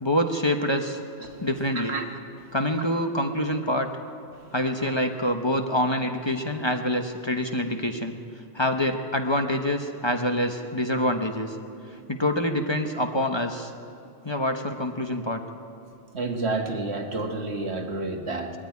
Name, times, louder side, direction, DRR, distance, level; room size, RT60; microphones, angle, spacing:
voice 1, 0.0-1.0 1.4-1.9 2.5-3.9 4.5-8.1 8.5-11.5 12.1-13.7 14.2-15.4, left 1 dB, 25° left, 4 dB, 1.1 m, -26 dB
voice 2, 1.7-2.1 2.4-2.6 4.3-4.5 11.9-12.1 16.1-18.5, right 3 dB, 70° right, 4 dB, 1.7 m, -30 dB
20.0 x 13.5 x 9.5 m, 2.5 s
omnidirectional pair, 1.1 m